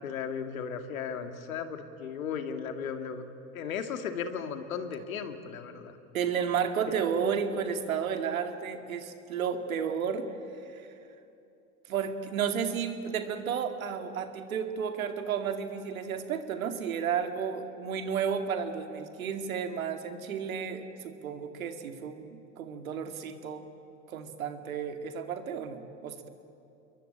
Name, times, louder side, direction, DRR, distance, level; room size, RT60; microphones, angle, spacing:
voice 1, 0.0-3.2 3.5-6.0 6.9-7.0, left 7 dB, 80° left, 8 dB, 2.4 m, -36 dB
voice 2, 6.1-10.3 10.6-10.9 11.9-23.6 24.1-26.3, right 7 dB, 85° right, 7 dB, 2.4 m, -32 dB
28.0 x 22.0 x 8.9 m, 2.8 s
hypercardioid pair, 85°, 41 cm